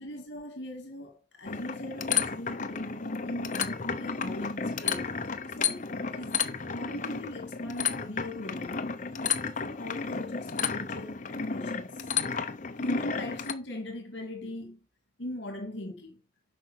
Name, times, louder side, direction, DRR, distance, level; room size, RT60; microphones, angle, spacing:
voice 1, 0.0-8.9 9.2-12.0 12.8-14.8 15.2-16.2, left 1 dB, 65° left, 2.4 m, -40 dB
sound 1, 1.5-13.5, left 6 dB, 40° left, 0.8 m, -32 dB
7.9 x 5.4 x 6.4 m
head